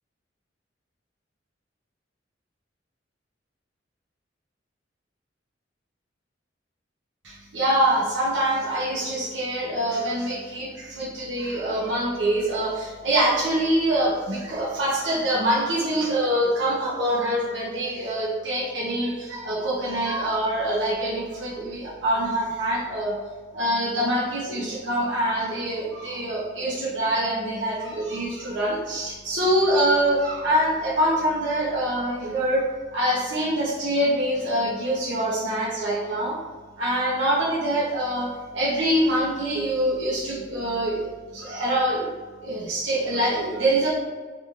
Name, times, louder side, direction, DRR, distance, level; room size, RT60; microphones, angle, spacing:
voice 1, 7.2-23.2 23.5-36.4 36.8-42.1 42.4-43.9, right 1 dB, 70° right, -6 dB, 0.6 m, -25 dB
2.5 x 2.4 x 2.9 m, 1.4 s
head